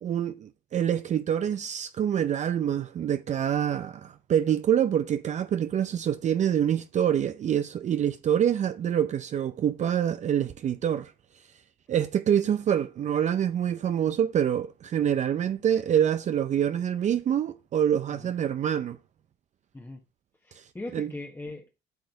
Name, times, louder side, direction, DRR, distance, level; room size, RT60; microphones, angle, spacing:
voice 1, 0.0-11.1 11.9-19.0 20.5-20.7 20.9-21.1, right 9 dB, 45° right, 0.6 m, -26 dB
voice 2, 20.4-21.8, left 2 dB, 15° left, 1.2 m, -40 dB
8.2 x 6.6 x 4.7 m
cardioid pair, 110°, 17 cm